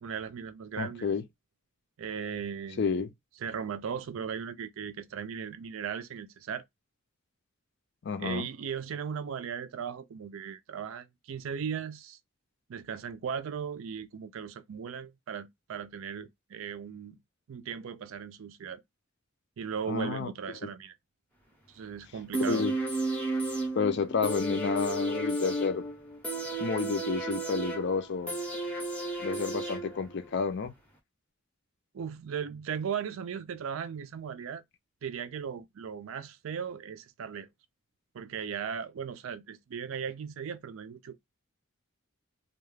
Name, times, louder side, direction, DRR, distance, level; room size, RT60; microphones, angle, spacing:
voice 1, 0.0-1.1 2.0-3.0 3.4-6.6 8.2-12.2 12.7-17.2 17.5-18.8 19.6-20.9 21.7-22.6 26.5-26.7 31.9-34.6 35.0-37.5 38.1-41.2, right 7 dB, 70° right, 0.4 m, -37 dB
voice 2, 0.8-1.2 2.8-3.1 8.0-8.5 19.9-20.3 22.4-22.7 23.8-25.8 26.6-28.3 29.2-30.7, left 5 dB, 50° left, 0.4 m, -30 dB
sound 1, 22.3-30.3 30.6-30.7, right 2 dB, 5° left, 0.6 m, -33 dB
2.3 x 2.3 x 3.2 m
head